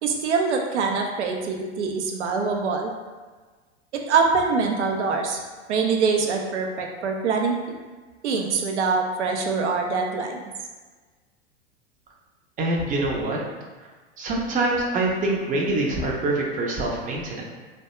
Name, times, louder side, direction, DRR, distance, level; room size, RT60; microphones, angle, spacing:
voice 1, 0.0-2.9 3.9-5.4 5.7-7.8 8.2-10.4, right 5 dB, 85° right, 2 dB, 0.5 m, -24 dB
voice 2, 12.6-13.4 14.2-17.5, right 2 dB, 25° right, -2 dB, 0.4 m, -25 dB
2.2 x 2.1 x 2.9 m, 1.4 s
hypercardioid pair, 100°, 34 cm